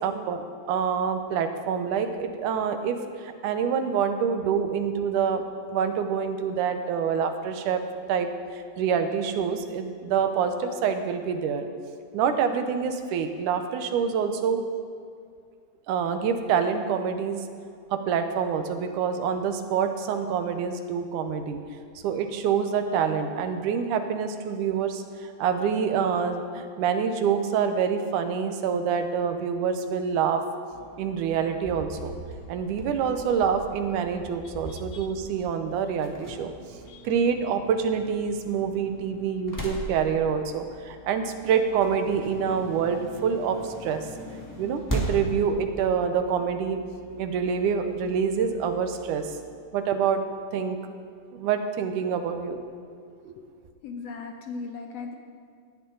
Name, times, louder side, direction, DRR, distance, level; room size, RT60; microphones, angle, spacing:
voice 1, 0.0-3.0 3.2-5.4 5.7-7.8 8.1-11.7 12.1-14.6 15.9-17.4 17.9-21.6 22.0-25.0 25.4-30.4 31.0-32.1 32.5-36.5 37.0-44.0 44.6-46.8 47.2-49.3 49.7-50.2 50.5-50.8 51.3-52.6 53.2-53.4, right 7 dB, 80° right, 7 dB, 2.3 m, -26 dB
sound 1, 30.7-49.4, right 1 dB, 10° left, 1.2 m, -40 dB
voice 2, 34.7-35.1 36.9-37.2 53.4-53.5 53.8-55.1, left 4 dB, 65° left, 3 dB, 1.8 m, -38 dB
18.5 x 13.0 x 3.9 m, 2.2 s
omnidirectional pair, 3.7 m